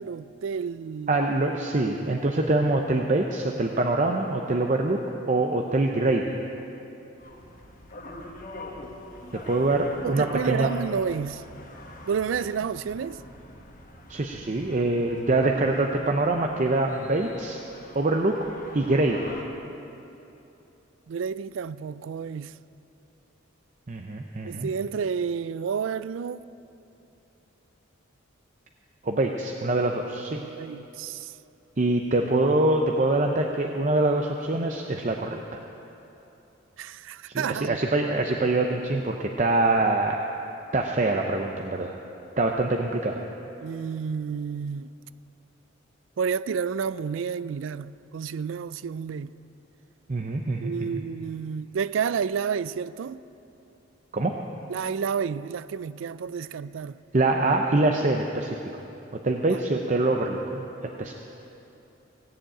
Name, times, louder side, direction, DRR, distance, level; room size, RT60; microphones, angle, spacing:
voice 1, 0.0-1.2 10.0-11.4 12.1-13.2 21.1-22.6 24.4-26.5 30.4-31.3 36.8-37.8 38.4-38.5 43.6-44.9 46.2-49.3 50.6-53.2 54.7-57.0 59.5-59.6, right 6 dB, 75° right, 0.4 m, -30 dB
voice 2, 1.1-5.0 5.3-6.4 9.3-10.7 14.1-17.6 17.9-18.4 18.7-19.3 23.9-24.7 29.0-30.4 31.8-35.6 37.3-40.2 40.7-41.9 42.4-43.2 50.1-51.0 54.1-54.3 57.1-58.6 59.1-60.7 61.0-61.1, right 2 dB, 40° right, 0.6 m, -24 dB
sound 1, 7.2-19.4, left 1 dB, 45° left, 1.3 m, -44 dB
16.5 x 7.5 x 8.7 m
head